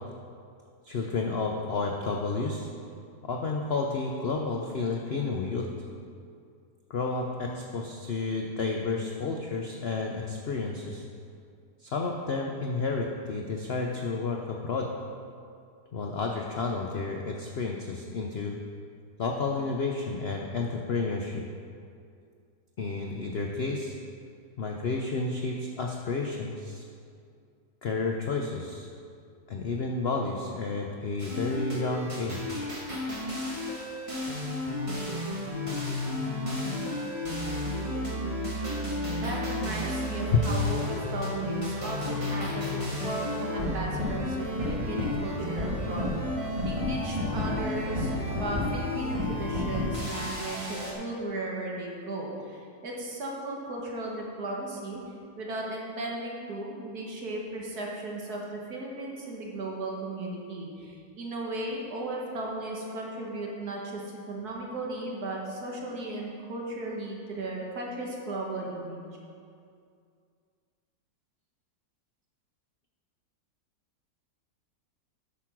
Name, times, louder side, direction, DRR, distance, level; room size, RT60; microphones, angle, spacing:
voice 1, 0.8-2.7 3.2-5.7 6.9-11.0 11.8-14.9 15.9-18.6 19.2-21.4 22.8-23.9 24.6-26.8 27.8-28.9 29.5-32.7 40.3-40.5, left 4 dB, 85° left, 1 dB, 0.5 m, -31 dB
sound 1, 31.2-50.9, left 1 dB, 20° right, 1.2 m, -32 dB
voice 2, 39.0-55.0 55.4-69.0, right 2 dB, 60° right, -2 dB, 1.7 m, -36 dB
8.3 x 6.1 x 5.9 m, 2.3 s
omnidirectional pair, 1.9 m